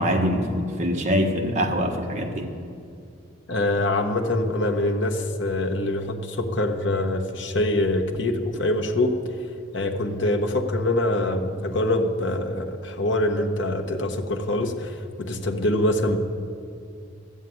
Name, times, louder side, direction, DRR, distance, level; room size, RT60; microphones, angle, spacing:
voice 1, 0.0-2.5, equal, 35° right, 2 dB, 1.4 m, -24 dB
voice 2, 3.5-9.3 9.7-16.2, left 1 dB, 65° left, 2 dB, 1.2 m, -24 dB
12.5 x 8.3 x 9.3 m, 2.5 s
head